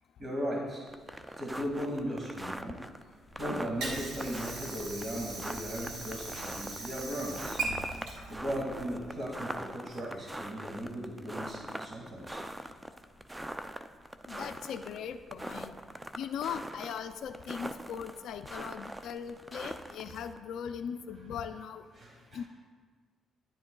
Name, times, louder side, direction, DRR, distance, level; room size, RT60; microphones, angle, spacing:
voice 1, 0.2-0.8 1.4-2.8 3.4-7.6 8.3-12.4 21.9-22.5, equal, 40° right, -2 dB, 2.1 m, -37 dB
sound 1, 0.9-20.4, right 1 dB, 10° right, 0.4 m, -42 dB
Water / Sink (filling or washing), 3.3-9.3, right 3 dB, 85° right, 1.8 m, -40 dB
voice 2, 14.3-15.7 16.2-21.8 22.3-22.5, left 7 dB, 75° left, 8 dB, 0.4 m, -39 dB
10.0 x 10.0 x 2.3 m, 1.5 s
cardioid pair, 90°, 0 cm